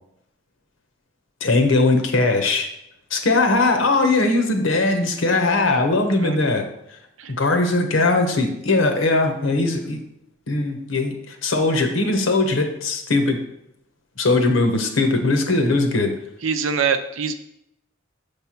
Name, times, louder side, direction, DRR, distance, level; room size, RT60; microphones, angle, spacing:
voice 1, 1.4-2.7 3.1-6.7 7.4-10.0 10.5-13.4 14.2-16.1, left 2 dB, 75° left, 5 dB, 1.0 m, -20 dB
voice 2, 16.4-17.3, right 6 dB, 80° right, 9 dB, 0.6 m, -23 dB
6.8 x 3.3 x 5.8 m, 0.79 s
head